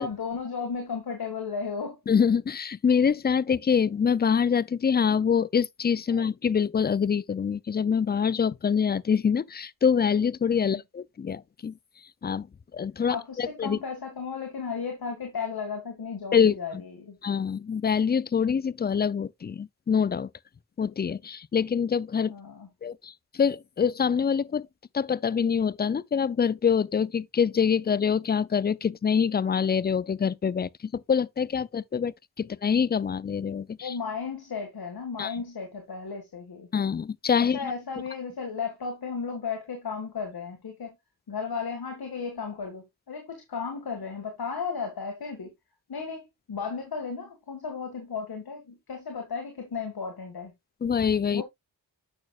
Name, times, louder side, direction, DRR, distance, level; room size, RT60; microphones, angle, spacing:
voice 1, 0.0-2.0 6.1-6.2 10.6-10.8 13.1-17.2 22.3-22.7 33.8-36.7 37.5-41.0 41.3-45.5 45.9-50.5 51.3-51.4, left 5 dB, 70° left, 1.9 m, -34 dB
voice 2, 2.1-11.7 12.2-12.5 12.7-13.8 16.3-16.5 17.2-20.3 20.8-22.3 22.8-24.7 24.9-33.9 35.2-35.3 36.7-37.7 50.8-51.4, left 7 dB, 25° left, 0.4 m, -25 dB
8.7 x 6.3 x 2.4 m
cardioid pair, 55°, 38 cm